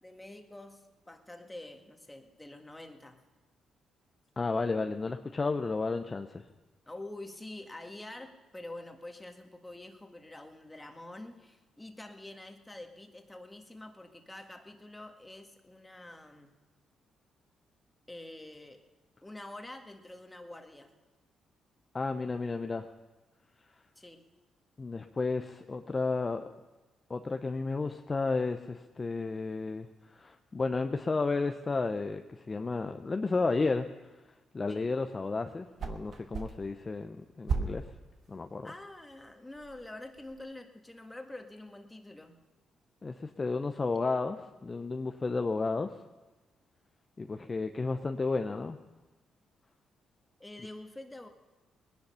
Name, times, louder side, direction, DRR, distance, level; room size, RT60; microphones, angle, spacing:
voice 1, 0.0-3.2 6.9-16.5 18.1-18.8 19.2-20.9 23.9-24.2 34.7-34.9 38.6-42.4 50.4-51.3, left 1 dB, 15° left, 5 dB, 1.7 m, -47 dB
voice 2, 4.4-6.4 21.9-22.9 24.8-26.4 27.1-33.9 34.5-37.9 38.3-38.7 43.0-46.0 47.2-48.8, left 3 dB, 30° left, 7 dB, 0.7 m, -32 dB
sound 1, 35.6-40.4, right 5 dB, 60° right, 1.3 m, -39 dB
20.0 x 10.5 x 5.6 m, 1.2 s
supercardioid pair, 70°, 0 cm